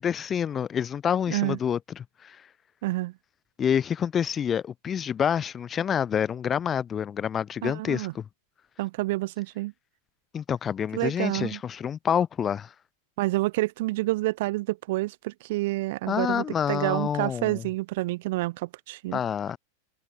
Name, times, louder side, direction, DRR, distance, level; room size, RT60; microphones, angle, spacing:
voice 1, 0.0-2.4 3.6-8.2 10.3-12.7 16.1-17.6 19.1-19.6, left 8 dB, 25° left, 3.1 m, -27 dB
voice 2, 2.8-3.1 7.6-8.1 8.8-9.7 10.9-11.6 13.2-19.2, right 19 dB, 50° right, 4.8 m, -28 dB
figure-of-eight pair, 90°, 0 cm